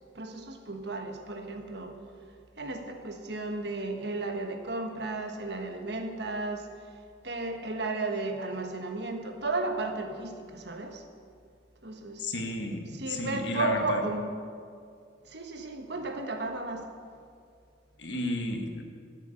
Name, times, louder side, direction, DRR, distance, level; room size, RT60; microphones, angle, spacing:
voice 1, 0.1-2.0 2.6-11.0 11.8-12.3 12.9-14.3 15.2-16.9, right 2 dB, 60° right, 5 dB, 1.3 m, -34 dB
voice 2, 12.2-14.0 18.0-18.8, left 2 dB, 70° left, 4 dB, 1.5 m, -32 dB
13.0 x 8.2 x 6.4 m, 2.2 s
head